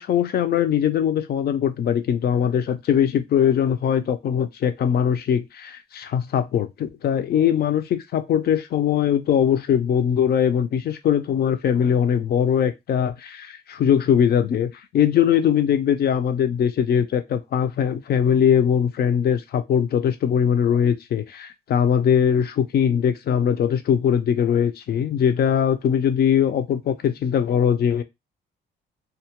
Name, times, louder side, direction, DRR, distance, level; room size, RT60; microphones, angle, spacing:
voice 1, 0.0-28.0, left 8 dB, 55° left, 0.4 m, -21 dB
2.3 x 2.1 x 2.8 m
cardioid pair, 90°, 20 cm